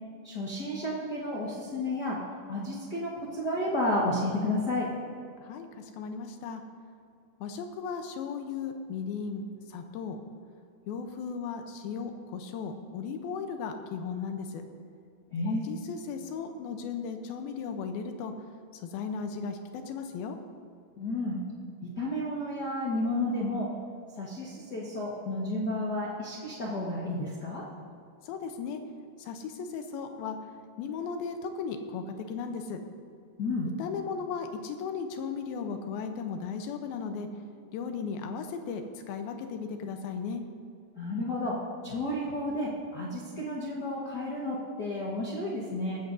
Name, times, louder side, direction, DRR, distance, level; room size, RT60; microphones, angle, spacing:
voice 1, 0.2-2.2 2.5-4.9 15.3-15.6 21.0-21.4 22.0-23.7 24.2-27.6 33.4-33.7 41.0-41.6 41.8-46.0, left 1 dB, 60° left, -6 dB, 1.0 m, -31 dB
voice 2, 5.4-6.6 7.4-10.2 10.9-14.6 15.5-18.3 18.8-20.4 28.2-28.8 29.2-30.4 30.8-32.8 33.8-37.3 37.7-40.4, left 5 dB, 80° left, 6 dB, 2.6 m, -36 dB
18.5 x 14.5 x 2.7 m, 2.5 s
omnidirectional pair, 4.4 m